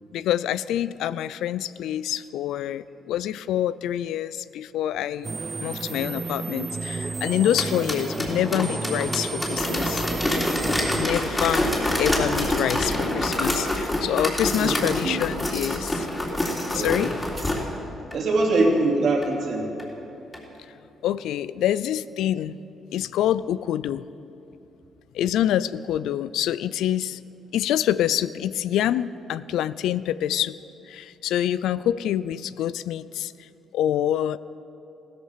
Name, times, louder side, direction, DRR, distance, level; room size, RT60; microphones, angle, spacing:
voice 1, 0.1-5.3 5.6-10.1 10.9-11.7 12.0-16.1 16.7-17.1 21.0-22.6 22.9-24.0 25.1-27.2 27.5-30.6 30.9-33.5 33.7-34.4, left 11 dB, 85° left, 17 dB, 0.4 m, -26 dB
sound 1, 5.2-11.1, right 4 dB, 30° right, 0.4 m, -32 dB
sound 2, 7.3-17.6 18.1-18.2 18.6-18.7 19.2-19.3 19.8-19.9 20.3-20.4, left 1 dB, 15° left, 3.3 m, -26 dB
voice 2, 18.1-19.7, right 2 dB, 60° right, 0 dB, 2.9 m, -22 dB
15.5 x 13.5 x 5.6 m, 3.0 s
cardioid pair, 90°, 0 cm